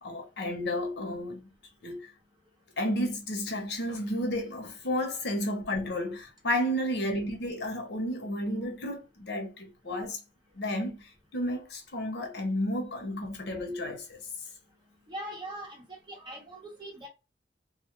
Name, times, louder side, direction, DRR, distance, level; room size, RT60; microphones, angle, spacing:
voice 1, 0.0-1.5 1.8-2.1 2.8-10.2 10.5-14.3, left 1 dB, 70° left, 0.7 m, -32 dB
voice 2, 15.1-17.1, right 1 dB, 25° right, 0.9 m, -41 dB
2.3 x 2.0 x 2.9 m
head